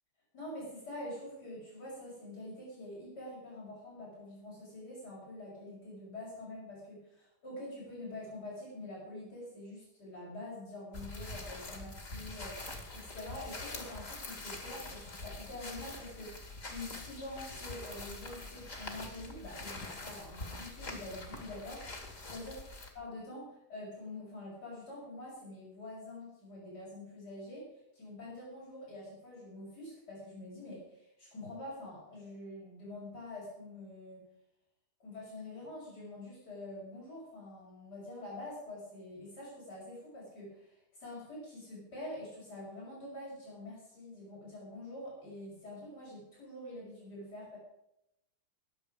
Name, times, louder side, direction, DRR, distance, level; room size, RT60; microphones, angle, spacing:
voice 1, 0.3-22.6 22.9-34.2 35.0-47.6, left 1 dB, 80° left, -5 dB, 6.8 m, -46 dB
sound 1, 10.9-22.9, left 2 dB, 50° left, 2.8 m, -44 dB
21.5 x 7.8 x 5.1 m, 0.84 s
omnidirectional pair, 1.8 m